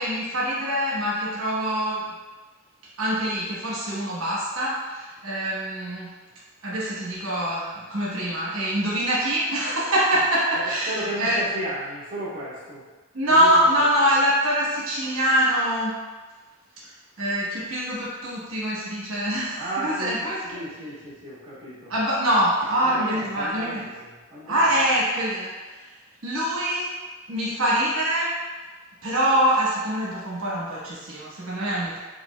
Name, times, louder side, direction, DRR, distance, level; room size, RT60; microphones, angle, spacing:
voice 1, 0.0-2.2 3.0-6.1 6.6-11.4 13.1-16.0 17.2-20.4 21.9-23.9 24.5-25.9 26.2-26.9 27.3-28.5 29.0-32.0, equal, 65° right, -7 dB, 1.1 m, -24 dB
voice 2, 10.6-12.8 13.2-13.8 19.5-21.9 22.8-24.6, right 1 dB, 25° right, -10 dB, 1.1 m, -34 dB
6.7 x 2.5 x 2.3 m, 1.3 s
head